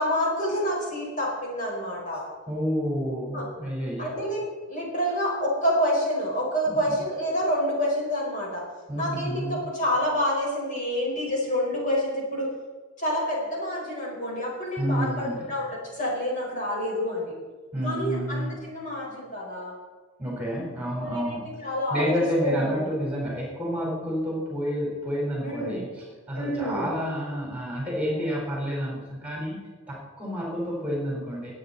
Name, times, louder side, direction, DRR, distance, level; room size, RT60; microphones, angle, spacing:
voice 1, 0.0-2.2 3.3-3.5 4.0-8.6 9.0-12.5 13.0-17.3 17.8-19.7 21.0-22.1 22.4-22.9 25.4-25.8 26.3-26.9, equal, 40° left, -3 dB, 4.9 m, -28 dB
voice 2, 2.5-4.1 6.6-6.8 8.9-9.6 14.8-15.4 17.7-18.6 20.2-21.4 21.9-29.6 29.9-31.5, equal, 5° right, -4 dB, 4.2 m, -29 dB
20.5 x 8.8 x 4.2 m, 1.4 s
head